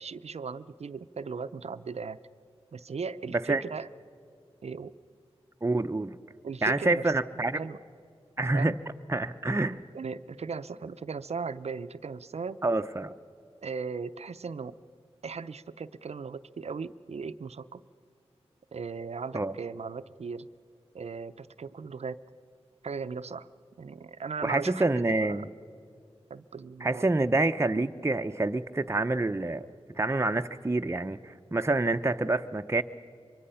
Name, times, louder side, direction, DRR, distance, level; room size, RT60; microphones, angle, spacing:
voice 1, 0.0-2.2 2.7-3.9 4.6-4.9 6.4-7.1 7.6-7.8 8.5-8.8 9.6-12.6 13.6-14.8 15.2-17.8 18.7-20.5 20.9-22.2 22.8-23.5 23.8-25.5 26.3-27.1, right 5 dB, 75° right, 14 dB, 0.6 m, -37 dB
voice 2, 3.3-3.6 5.6-6.2 6.6-7.6 8.4-8.7 9.1-9.8 12.6-13.1 19.3-19.5 24.4-25.5 26.8-29.7 30.0-32.8, right 2 dB, 25° right, 7 dB, 0.7 m, -27 dB
25.0 x 23.0 x 5.6 m, 2.4 s
cardioid pair, 45°, 11 cm